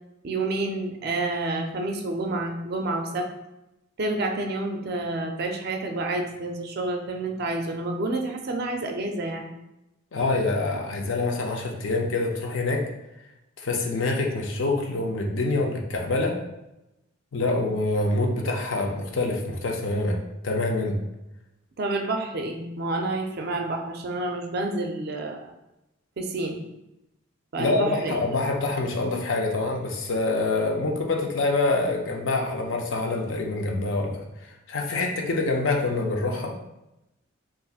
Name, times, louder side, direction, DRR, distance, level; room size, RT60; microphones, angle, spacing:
voice 1, 0.2-3.3 4.0-9.5 21.8-25.5 26.2-26.6 27.5-28.1, right 2 dB, 45° right, 3 dB, 0.4 m, -29 dB
voice 2, 10.1-12.8 13.6-16.4 17.3-20.2 20.4-21.0 27.6-34.2 34.7-36.5, left 2 dB, 65° left, 1 dB, 0.5 m, -26 dB
4.0 x 2.5 x 2.3 m, 0.92 s
head